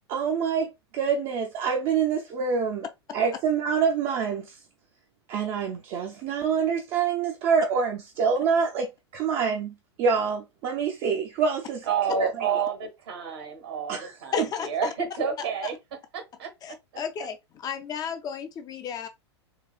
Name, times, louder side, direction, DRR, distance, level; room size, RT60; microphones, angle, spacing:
voice 1, 0.1-2.9 3.1-4.6 5.3-11.9 12.2-12.5 13.9-14.1, right 6 dB, 40° right, 0.6 m, -26 dB
voice 2, 11.9-15.8 16.1-16.5, right 6 dB, 65° right, 1.2 m, -29 dB
voice 3, 14.3-14.7 16.6-17.4 17.6-19.1, left 7 dB, 25° left, 0.5 m, -32 dB
4.0 x 2.4 x 2.3 m
figure-of-eight pair, 95°, 14 cm